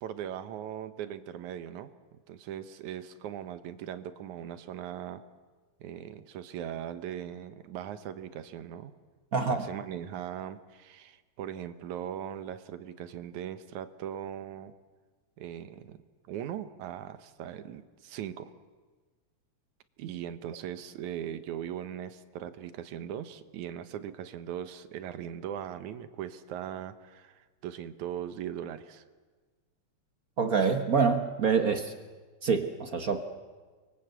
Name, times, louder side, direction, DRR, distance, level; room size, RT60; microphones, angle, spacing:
voice 1, 0.0-1.9 2.3-5.2 5.8-8.9 9.5-14.7 15.4-16.0 16.3-18.5 20.0-29.0, right 10 dB, 80° right, 11 dB, 2.5 m, -39 dB
voice 2, 9.3-9.7 30.4-31.9 32.4-33.2, right 5 dB, 55° right, 7 dB, 0.9 m, -26 dB
30.0 x 23.5 x 8.2 m, 1.4 s
omnidirectional pair, 3.3 m